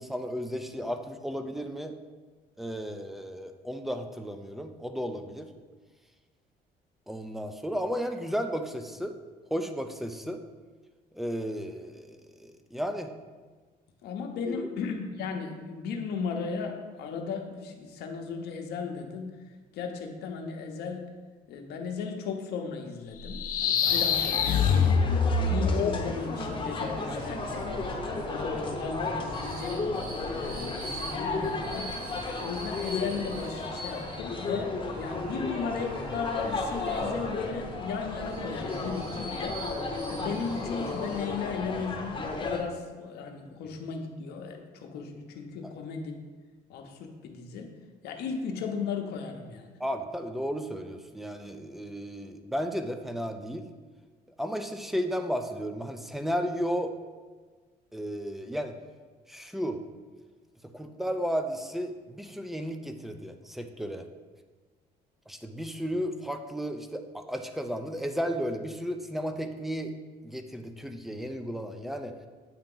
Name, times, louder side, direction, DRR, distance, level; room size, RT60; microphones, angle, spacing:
voice 1, 0.0-1.9 2.6-5.5 7.1-9.1 9.5-10.4 11.1-13.1 14.5-14.7 28.5-28.6 45.6-45.7 49.8-53.7 54.4-56.9 57.9-58.8 59.3-59.8 60.7-64.1 65.3-69.9 70.2-72.1, equal, ahead, 6 dB, 0.4 m, -34 dB
voice 2, 14.0-19.4 19.7-21.1 21.5-25.1 25.4-29.8 30.3-31.9 32.4-39.6 40.1-46.1 46.7-47.7 48.0-49.8, left 5 dB, 75° left, 3 dB, 0.8 m, -36 dB
sound 1, 23.2-26.1, left 5 dB, 55° left, 0.5 m, -24 dB
sound 2, 23.8-42.6, left 3 dB, 30° left, 0.8 m, -34 dB
sound 3, 25.9-41.6, right 1 dB, 60° right, 1.2 m, -43 dB
8.6 x 2.9 x 3.8 m, 1.4 s
cardioid pair, 110°, 17 cm